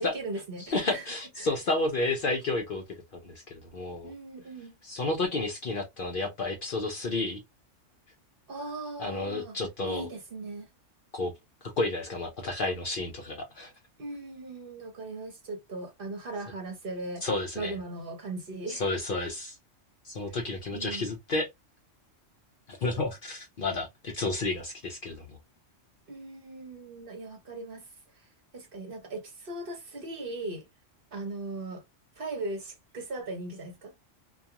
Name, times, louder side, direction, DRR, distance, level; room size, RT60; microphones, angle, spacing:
voice 1, 0.0-1.0 1.4-1.5 4.0-4.8 8.5-9.6 9.8-10.7 14.0-17.3 17.5-18.9 20.3-20.4 20.7-21.1 26.1-27.9 28.1-30.7 31.1-31.8 32.2-34.0, right 2 dB, 50° right, 0.8 m, -38 dB
voice 2, 0.6-2.8 3.2-4.1 4.8-7.4 9.0-10.1 11.1-11.3 11.6-13.7 17.2-17.7 18.7-19.6 20.0-21.5 22.7-25.4, left 2 dB, 55° left, 0.6 m, -31 dB
2.3 x 2.3 x 2.7 m
omnidirectional pair, 1.3 m